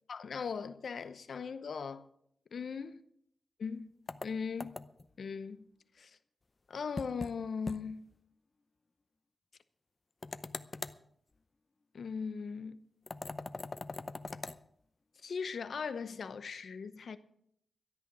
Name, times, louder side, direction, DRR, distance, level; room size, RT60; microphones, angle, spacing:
voice 1, 0.1-2.1 2.5-3.0 3.6-3.9 4.2-4.8 5.2-5.7 6.0-6.2 6.7-8.1 11.9-12.9 15.2-17.2, left 5 dB, 75° left, 0.8 m, -39 dB
sound 1, 4.1-5.1 7.0-7.4 7.7-7.8 8.1-8.2 10.2-11.0 13.1-14.6, left 3 dB, 35° left, 0.6 m, -41 dB
13.5 x 11.0 x 6.2 m
wide cardioid pair, 120°, 0 cm